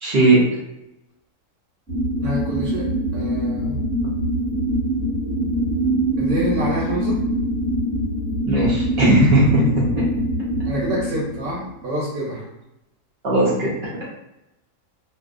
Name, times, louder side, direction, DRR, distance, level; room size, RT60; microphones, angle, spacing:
voice 1, 0.0-0.4 8.5-9.9 13.2-13.7, right 1 dB, 60° right, -6 dB, 0.7 m, -17 dB
sound 1, 1.9-11.7, right 1 dB, ahead, 0.8 m, -23 dB
voice 2, 2.2-3.8 6.2-7.2 10.6-12.5, equal, 80° right, -6 dB, 1.2 m, -27 dB
2.6 x 2.1 x 2.4 m, 0.89 s
omnidirectional pair, 1.6 m